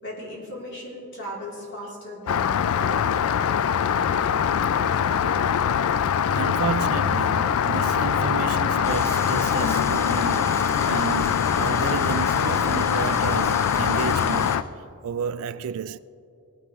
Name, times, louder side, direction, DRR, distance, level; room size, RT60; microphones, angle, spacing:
voice 1, 0.0-3.4, equal, 55° left, 3.3 m, -37 dB
Rain, 2.3-14.6, left 8 dB, 75° left, 0.3 m, -23 dB
voice 2, 6.3-16.0, right 7 dB, 70° right, 0.3 m, -32 dB
sound 1, 8.8-14.5, left 1 dB, 10° left, 0.7 m, -37 dB
19.0 x 9.9 x 3.1 m
head